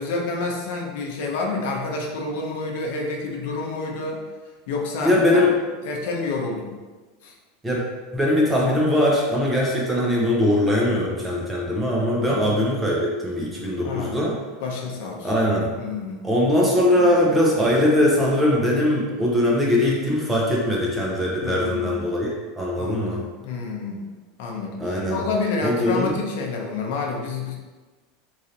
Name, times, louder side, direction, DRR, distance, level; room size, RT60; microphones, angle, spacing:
voice 1, 0.0-4.2 4.7-5.4 5.8-6.8 7.2-7.3 12.2-12.4 13.8-14.2 14.6-15.3 15.7-16.2 16.9-17.2 21.4-21.9 22.8-24.1 24.4-27.5, left 3 dB, 60° left, 0 dB, 0.6 m, -29 dB
voice 2, 5.0-5.5 7.6-7.8 8.1-14.3 15.2-15.7 16.2-23.2 24.8-25.2 25.6-26.1, left 1 dB, 10° right, -4 dB, 0.5 m, -21 dB
3.1 x 2.7 x 3.8 m, 1.3 s
supercardioid pair, 180°, 0 cm